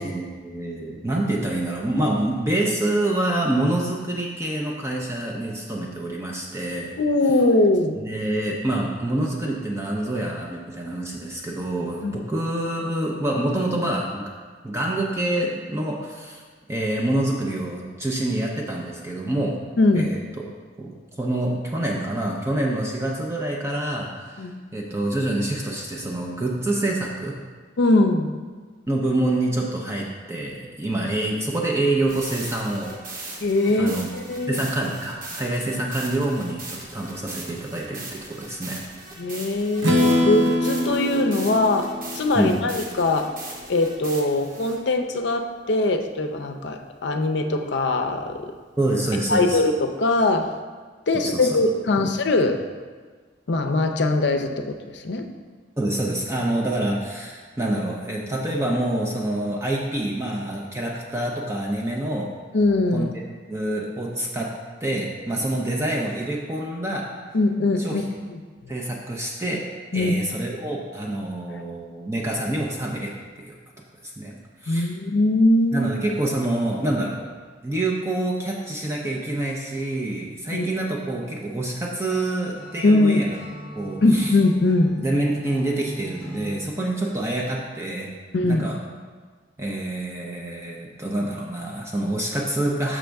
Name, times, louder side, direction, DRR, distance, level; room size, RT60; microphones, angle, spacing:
voice 1, 0.0-6.9 8.0-14.3 14.6-16.4 16.7-19.6 19.9-20.4 20.8-24.4 24.7-27.4 28.9-33.3 33.8-34.1 34.5-38.8 42.3-42.6 48.8-49.6 51.1-51.6 52.0-52.1 55.8-62.3 62.9-63.1 63.5-64.5 64.8-67.1 67.8-68.0 68.7-69.7 69.9-73.1 73.4-73.5 74.0-74.4 74.6-74.9 75.7-77.2 77.6-83.4 83.8-84.3 85.0-88.1 88.4-88.8 89.6-93.0, right 1 dB, 15° right, -2 dB, 0.6 m, -26 dB
voice 2, 7.0-8.0 12.0-12.2 19.8-20.1 24.4-24.6 27.8-28.3 33.4-34.6 39.2-43.3 43.7-48.5 49.3-50.5 51.1-52.6 53.5-55.3 62.5-63.1 67.3-68.0 68.3-68.7 69.9-70.1 74.7-75.9 80.5-80.6 82.8-83.2 84.0-84.9 88.3-88.6, left 2 dB, 70° left, 5 dB, 0.5 m, -21 dB
sound 1, 32.0-44.8, right 2 dB, 50° right, 1.1 m, -39 dB
Strum, 39.8-43.7, left 1 dB, 85° right, 0.7 m, -24 dB
Acoustic guitar / Strum, 82.5-86.6, equal, 20° left, 1.8 m, -39 dB
6.4 x 6.1 x 3.4 m, 1.5 s
head